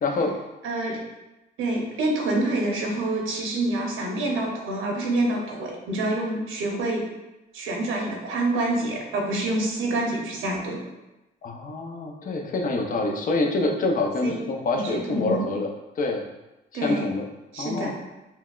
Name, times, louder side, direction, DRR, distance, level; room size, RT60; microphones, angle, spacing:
voice 1, 0.0-0.4 11.4-15.7 16.0-16.2 16.7-17.3 17.6-17.9, left 2 dB, 45° left, 2 dB, 0.6 m, -26 dB
voice 2, 0.6-1.0 1.6-7.0 7.5-10.8 14.2-14.4 14.8-15.4 16.7-17.1 17.5-17.9, right 2 dB, 85° right, 0 dB, 0.9 m, -27 dB
5.6 x 2.2 x 2.4 m, 1.0 s
cardioid pair, 90°, 20 cm